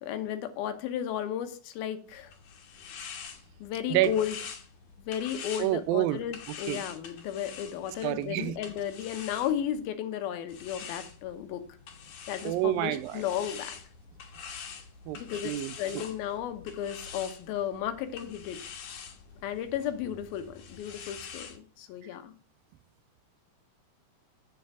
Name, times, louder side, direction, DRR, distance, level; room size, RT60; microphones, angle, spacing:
voice 1, 0.0-2.3 3.6-4.4 5.1-11.6 12.3-13.8 15.2-18.6 19.4-22.3, left 10 dB, 85° left, 8 dB, 2.9 m, -34 dB
sound 1, 2.1-9.9 10.5-21.6, left 6 dB, 65° left, 2.5 m, -45 dB
voice 2, 5.6-6.2 6.7-6.8 8.0-8.5 12.5-13.2 15.1-16.0, right 15 dB, 80° right, 16 dB, 2.2 m, -28 dB
7.8 x 7.0 x 4.6 m, 0.42 s
omnidirectional pair, 4.2 m